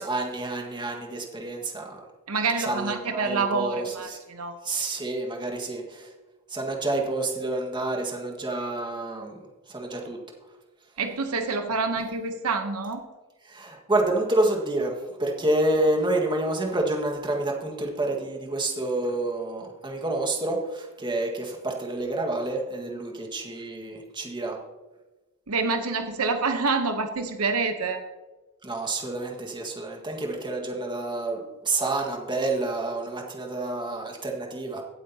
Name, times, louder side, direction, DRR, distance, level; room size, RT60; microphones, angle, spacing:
voice 1, 0.0-2.0 2.6-4.2 4.6-6.1 6.5-9.4 9.7-10.2 13.4-24.6 28.6-34.8, right 2 dB, 20° right, 0 dB, 1.6 m, -28 dB
voice 2, 2.3-4.6 11.0-13.0 25.5-28.0, right 4 dB, 80° right, 7 dB, 0.9 m, -27 dB
17.0 x 8.4 x 2.8 m, 1.2 s
head